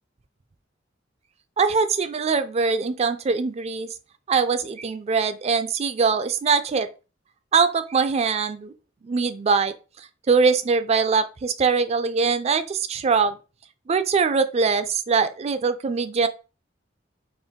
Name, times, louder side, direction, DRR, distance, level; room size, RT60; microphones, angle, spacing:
voice 1, 1.6-3.9 4.3-6.9 7.5-8.7 9.0-13.4 13.9-16.3, right 5 dB, 35° right, 0.4 m, -22 dB
4.4 x 2.5 x 3.6 m
head